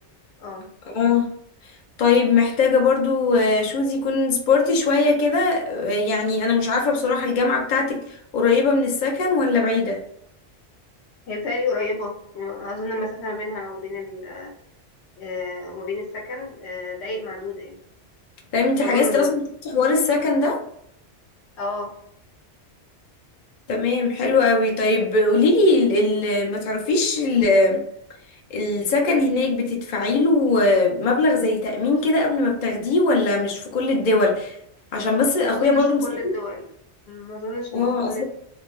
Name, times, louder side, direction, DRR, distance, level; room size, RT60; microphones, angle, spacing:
voice 1, 0.9-1.3 2.0-10.0 18.5-20.6 23.7-27.8 28.5-34.6 34.9-36.3 37.7-38.2, left 3 dB, 50° left, 0 dB, 0.6 m, -20 dB
voice 2, 11.3-14.5 15.2-17.8 18.8-19.3 21.6-21.9 35.4-36.7 37.1-38.2, left 2 dB, 70° left, 0 dB, 1.0 m, -30 dB
2.6 x 2.1 x 3.0 m, 0.70 s
omnidirectional pair, 1.2 m